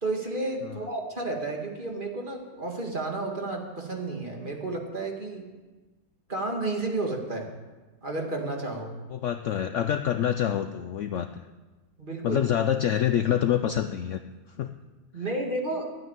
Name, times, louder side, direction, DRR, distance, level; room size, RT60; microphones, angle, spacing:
voice 1, 0.0-5.5 6.3-7.5 8.0-9.0 12.0-12.4 15.1-15.9, right 2 dB, 30° right, 1 dB, 2.0 m, -31 dB
voice 2, 9.1-11.4 12.2-14.2 14.6-14.7 15.2-15.3, left 10 dB, 65° left, 9 dB, 0.8 m, -26 dB
12.0 x 9.4 x 8.9 m, 1.2 s
omnidirectional pair, 1.7 m